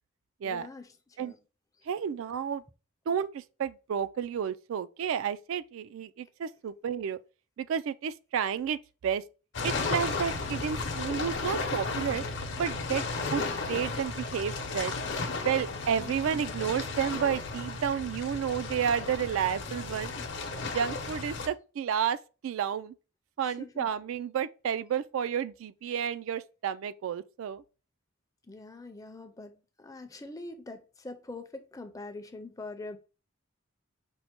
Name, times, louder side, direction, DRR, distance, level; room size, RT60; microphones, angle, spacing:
voice 1, 0.4-0.9 1.2-1.4 16.0-16.4 23.4-23.9 28.5-29.5 29.8-33.0, left 2 dB, 15° left, 0.5 m, -44 dB
voice 2, 1.9-2.6 3.1-7.2 7.6-9.2 9.6-12.2 12.6-13.0 13.3-14.9 15.4-20.1 20.6-22.9 23.4-27.6, right 8 dB, 70° right, 0.3 m, -31 dB
sound 1, 9.5-21.5, left 3 dB, 55° left, 0.8 m, -34 dB
5.3 x 2.1 x 4.4 m
head